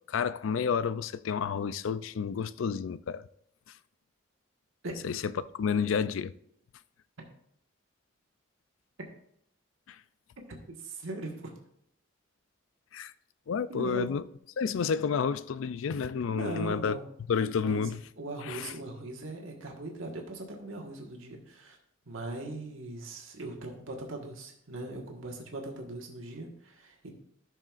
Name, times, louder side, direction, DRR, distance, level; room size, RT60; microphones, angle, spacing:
voice 1, 0.1-3.2 5.0-6.3 9.9-10.0 12.9-13.1 13.5-14.2 14.6-17.0 17.3-18.0 18.4-18.7, left 6 dB, 80° left, 0.4 m, -30 dB
voice 2, 10.5-11.5 13.7-14.1 16.3-17.1 17.5-17.8 18.2-21.8 22.0-27.1, right 2 dB, 85° right, 1.6 m, -40 dB
12.5 x 6.4 x 2.5 m
head